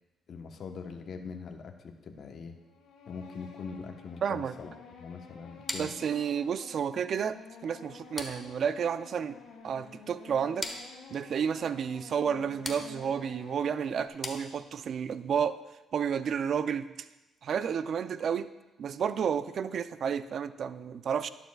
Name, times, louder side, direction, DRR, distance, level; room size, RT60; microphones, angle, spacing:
voice 1, 0.3-2.6 3.1-4.7 5.0-5.9, left 5 dB, 60° left, 4 dB, 1.0 m, -42 dB
sound 1, 2.6-14.1, left 5 dB, 90° left, 1.8 m, -51 dB
voice 2, 4.2-4.5 5.8-9.4 9.6-10.7 11.1-15.6 15.9-16.9 17.4-18.5 18.8-21.3, right 7 dB, 60° right, 13 dB, 0.4 m, -31 dB
sound 2, 5.7-15.0, left 2 dB, 15° left, 1.3 m, -44 dB
12.0 x 11.5 x 2.3 m, 1.1 s
cardioid pair, 90°, 0 cm